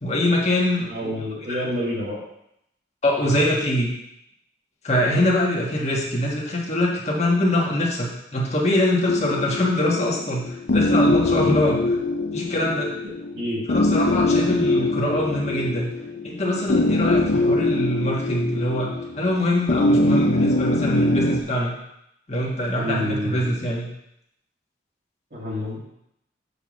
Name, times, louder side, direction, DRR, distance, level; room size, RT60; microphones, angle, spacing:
voice 1, 0.0-1.6 3.0-3.9 4.8-12.0 12.3-12.9 13.7-15.9 16.2-21.7 22.3-23.9, left 1 dB, 35° left, -3 dB, 1.5 m, -23 dB
voice 2, 0.9-2.2 3.3-3.4 13.4-13.6 22.7-23.5 25.3-25.8, equal, 55° right, -5 dB, 1.8 m, -28 dB
sound 1, 9.1-21.4, left 2 dB, 65° left, 0.5 m, -23 dB
6.8 x 3.7 x 6.2 m, 0.80 s
head